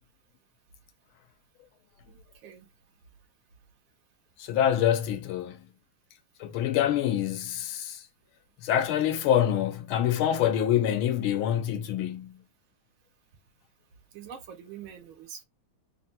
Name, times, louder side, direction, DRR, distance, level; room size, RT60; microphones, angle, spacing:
voice 1, 2.0-2.7 14.1-15.4, right 8 dB, 85° right, 1.7 m, -45 dB
voice 2, 4.4-5.7 6.4-8.0 8.6-12.4, left 10 dB, 85° left, 1.5 m, -26 dB
3.9 x 2.1 x 4.1 m
omnidirectional pair, 2.2 m